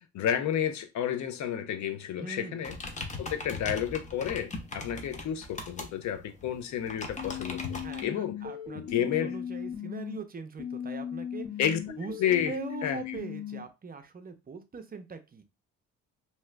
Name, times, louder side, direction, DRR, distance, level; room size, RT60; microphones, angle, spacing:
voice 1, 0.1-2.8 3.2-8.4 8.7-9.3 11.6-11.8 12.2-12.5 12.8-13.2, left 9 dB, 70° left, 0.6 m, -31 dB
voice 2, 2.2-3.0 7.8-11.5 12.0-12.1 12.5-15.4, right 5 dB, 30° right, 0.6 m, -42 dB
sound 1, 2.6-8.0, left 3 dB, 25° left, 0.7 m, -40 dB
sound 2, 7.2-10.2 10.6-13.6, left 9 dB, 90° left, 1.4 m, -37 dB
2.8 x 2.3 x 3.2 m
cardioid pair, 90°, 30 cm